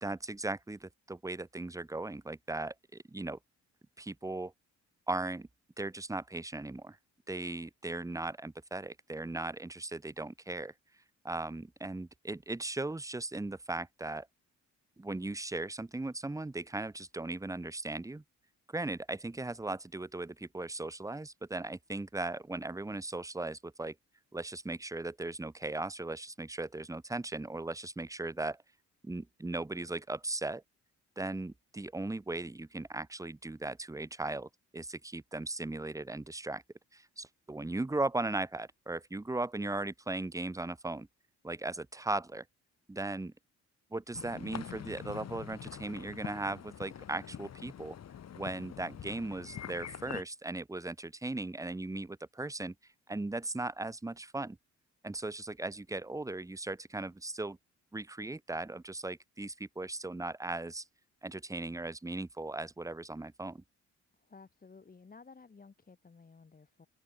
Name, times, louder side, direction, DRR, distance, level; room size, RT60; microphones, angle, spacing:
voice 1, 0.0-3.4 4.0-4.5 5.1-5.5 5.8-7.0 7.3-10.7 11.2-14.3 15.0-18.2 18.7-23.9 24.3-28.6 29.0-30.6 31.2-36.6 36.9-41.1 41.4-42.4 42.9-43.3 43.9-48.0 48.3-52.7 53.1-54.6 55.0-57.6 57.9-60.8 61.2-63.6, right 2 dB, 10° right, 1.2 m, -38 dB
sound 1, 44.1-50.2, left 9 dB, 60° left, 4.1 m, -45 dB
voice 2, 64.2-66.9, left 4 dB, 30° left, 3.3 m, -55 dB
open air
cardioid pair, 90°, 30 cm